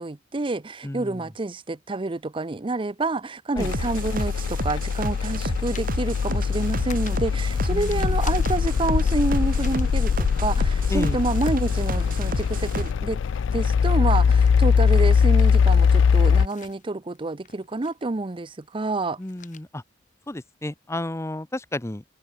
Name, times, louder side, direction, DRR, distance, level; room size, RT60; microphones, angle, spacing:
voice 1, 0.0-13.2 13.5-19.2, right 2 dB, 25° right, 0.6 m, -28 dB
voice 2, 0.8-1.3 3.6-3.7 7.7-8.2 10.9-11.2 19.2-19.8 20.3-22.0, left 1 dB, 15° left, 0.7 m, -32 dB
sound 1, 2.7-10.5 10.8-20.9, left 8 dB, 45° left, 4.8 m, -50 dB
sound 2, 3.6-16.5, left 6 dB, 80° left, 0.4 m, -21 dB
sound 3, 3.6-12.9, right 2 dB, 50° right, 1.9 m, -32 dB
head